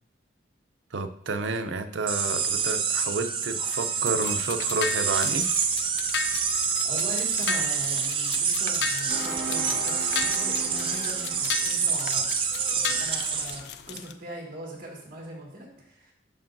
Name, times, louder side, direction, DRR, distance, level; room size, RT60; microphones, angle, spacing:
voice 1, 0.9-5.5, right 3 dB, 80° right, 9 dB, 0.6 m, -30 dB
sound 1, 2.1-13.6, right 6 dB, 30° right, 0.5 m, -27 dB
sound 2, 3.7-14.1, left 7 dB, 60° left, 0.4 m, -35 dB
voice 2, 6.4-12.3 12.8-13.6 13.9-16.1, right 1 dB, 50° right, -3 dB, 2.1 m, -40 dB
sound 3, 9.1-12.1, right 2 dB, 65° right, 2.6 m, -38 dB
11.5 x 4.5 x 2.6 m, 0.66 s
head